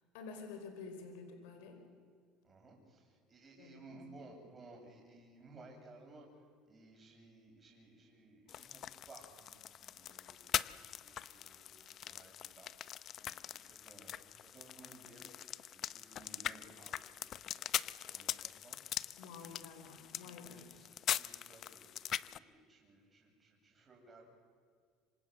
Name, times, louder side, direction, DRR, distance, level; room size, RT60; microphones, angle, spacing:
voice 1, 0.1-1.8 3.6-4.0 19.2-20.7, left 4 dB, 90° left, 6 dB, 4.7 m, -50 dB
voice 2, 2.4-15.3 15.7-19.7 20.2-20.9 21.2-21.9 22.2-24.3, right 2 dB, 25° right, 1 dB, 8.0 m, -59 dB
sound 1, 8.5-22.4, left 10 dB, 45° left, 0.7 m, -42 dB
26.5 x 25.5 x 7.9 m, 2.1 s
cardioid pair, 125°, 0 cm